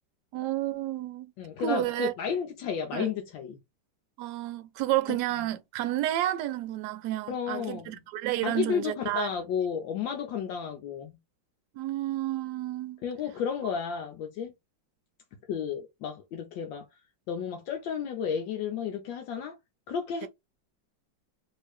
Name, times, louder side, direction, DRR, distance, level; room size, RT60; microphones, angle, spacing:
voice 1, 0.3-1.3 1.6-2.1 2.9-3.1 4.2-9.3 11.7-13.0, right 14 dB, 70° right, 1.0 m, -30 dB
voice 2, 1.4-3.6 5.1-5.2 7.3-8.0 8.4-11.2 13.0-14.5 15.5-16.8 17.3-19.5 19.9-20.3, left 7 dB, 80° left, 1.3 m, -32 dB
3.1 x 2.8 x 3.2 m
omnidirectional pair, 2.1 m